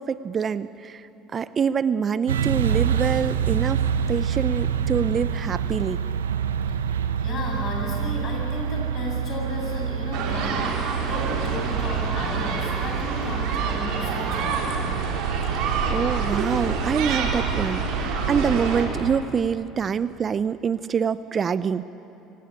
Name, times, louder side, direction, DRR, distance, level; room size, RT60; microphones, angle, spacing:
voice 1, 0.0-6.0 15.5-15.6 15.9-21.9, right 6 dB, 40° right, 15 dB, 0.6 m, -26 dB
sound 1, 2.3-19.2, right 7 dB, 90° right, 0.8 m, -28 dB
voice 2, 7.2-14.9, left 2 dB, 50° left, 1 dB, 7.5 m, -33 dB
sound 2, 10.1-18.9, right 5 dB, 65° right, 3.7 m, -28 dB
24.5 x 18.0 x 8.7 m, 2.8 s
hypercardioid pair, 70°, 0 cm